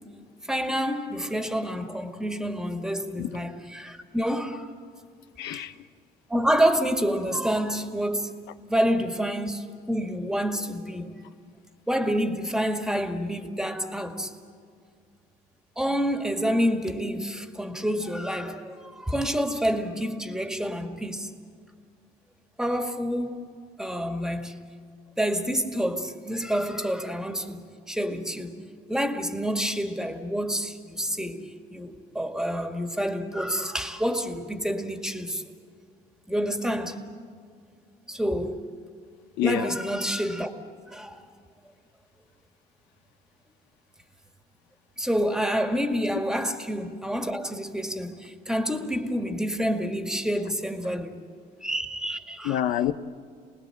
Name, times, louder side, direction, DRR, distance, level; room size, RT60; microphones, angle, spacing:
voice 1, 0.5-4.7 5.4-5.6 6.3-8.3 8.7-11.2 11.9-14.3 15.8-21.3 22.6-23.4 23.8-24.6 25.2-35.4 36.3-37.0 38.1-38.6 39.4-40.5 40.9-41.2 45.0-51.2 51.6-52.6, equal, 5° right, 2.1 m, -28 dB
voice 2, 5.4-5.9 39.4-39.8 52.4-52.9, left 11 dB, 90° left, 1.0 m, -27 dB
29.0 x 20.0 x 7.9 m
cardioid pair, 110°, 17 cm